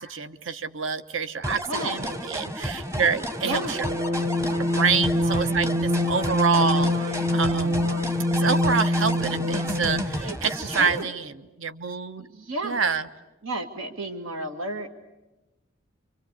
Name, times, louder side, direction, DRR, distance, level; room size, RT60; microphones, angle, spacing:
voice 1, 0.0-3.8 4.6-7.9 8.3-11.3 11.6-12.3 12.6-13.1, right 5 dB, 70° right, 11 dB, 1.0 m, -27 dB
sound 1, 1.4-11.0, equal, 15° right, 0.9 m, -32 dB
voice 2, 1.7-2.0 3.4-3.8 10.2-11.1 12.2-12.8 13.4-14.9, right 1 dB, 90° right, 5 dB, 2.1 m, -32 dB
sound 2, 3.4-10.2, left 1 dB, 35° right, 2.4 m, -25 dB
27.5 x 25.0 x 8.3 m, 1.0 s
head